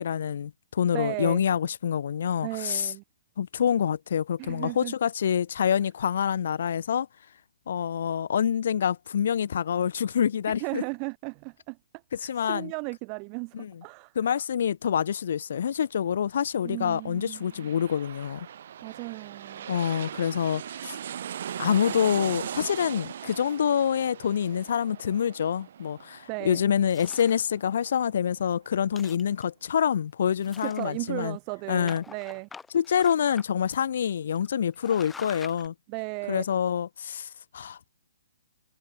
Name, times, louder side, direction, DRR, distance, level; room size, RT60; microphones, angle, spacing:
voice 1, 0.0-2.9 3.4-7.1 7.7-10.8 12.1-12.7 13.5-13.7 14.1-18.5 19.7-21.0 21.6-31.4 31.7-32.0 32.7-35.7 36.3-37.9, left 8 dB, 60° left, 1.6 m, -26 dB
voice 2, 0.9-1.4 2.4-3.0 4.4-4.9 10.6-11.8 12.2-14.1 16.6-17.5 18.8-19.7 26.3-26.6 30.6-32.5 35.9-36.5, right 40 dB or more, 30° right, 0.9 m, -35 dB
sound 1, 17.0-28.4 28.8-28.9, right 9 dB, 55° right, 1.0 m, -40 dB
sound 2, 26.9-27.4 28.0-28.1 28.4-28.5 28.8-29.7 30.4-31.2 31.9-33.4 33.7-33.8 34.3-34.5 34.7-35.7, left 4 dB, 5° left, 1.0 m, -46 dB
hypercardioid pair, 150°, 0 cm